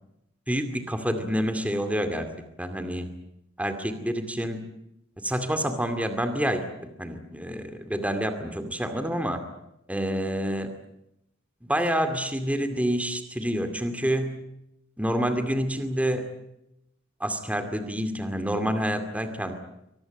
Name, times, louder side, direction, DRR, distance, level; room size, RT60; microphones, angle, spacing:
voice 1, 0.5-2.3 2.6-3.1 3.6-4.6 5.2-9.4 9.9-10.8 11.6-14.4 15.0-16.2 17.2-19.6, equal, 5° right, 8 dB, 2.3 m, -28 dB
24.0 x 19.5 x 9.0 m, 0.84 s
head